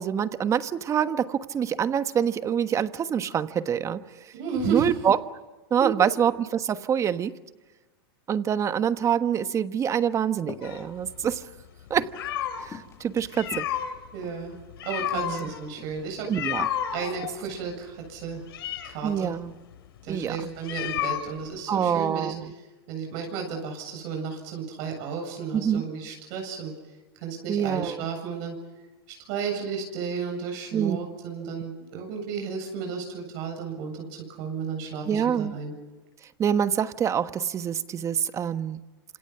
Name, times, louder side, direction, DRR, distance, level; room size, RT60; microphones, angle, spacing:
voice 1, 0.0-4.0 4.7-5.2 5.7-7.3 8.3-11.4 11.9-12.1 12.6-13.7 15.1-15.5 16.3-16.7 19.0-19.5 20.1-20.5 21.7-22.5 25.5-25.8 27.5-28.0 30.7-31.0 35.1-35.5 36.4-38.8, right 8 dB, 25° right, 11 dB, 1.2 m, -26 dB
voice 2, 4.3-4.9 5.8-5.9 13.3-13.4 14.1-14.6 14.8-16.3 16.9-18.4 18.8-19.3 20.0-22.3 22.9-26.7 27.1-28.6 29.2-35.7, right 6 dB, 55° right, 2 dB, 8.0 m, -33 dB
sound 1, 10.4-10.8 11.1-11.5 12.0-12.2 12.7-13.0 13.4-14.5 15.0-15.2 15.6-16.0 16.6-16.8 17.4-17.7, left 6 dB, 20° left, 2.2 m, -43 dB
sound 2, 10.6-12.7 13.2-21.6, left 10 dB, 80° left, 3.2 m, -32 dB
28.5 x 27.0 x 5.9 m, 1.2 s
hypercardioid pair, 125°, 13 cm